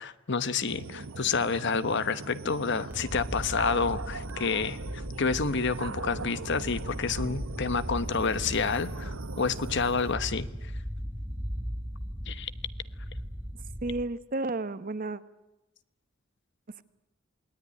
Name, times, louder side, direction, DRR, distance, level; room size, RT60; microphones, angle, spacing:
voice 1, 0.0-10.7 12.3-12.5, left 5 dB, 60° left, 13 dB, 1.1 m, -29 dB
sound 1, 0.7-10.2, right 3 dB, 80° right, 0.9 m, -41 dB
sound 2, 2.9-14.0, equal, 10° right, 1.3 m, -38 dB
voice 2, 13.8-15.2, right 2 dB, 45° right, 13 dB, 1.0 m, -32 dB
28.0 x 19.5 x 9.7 m, 0.98 s
head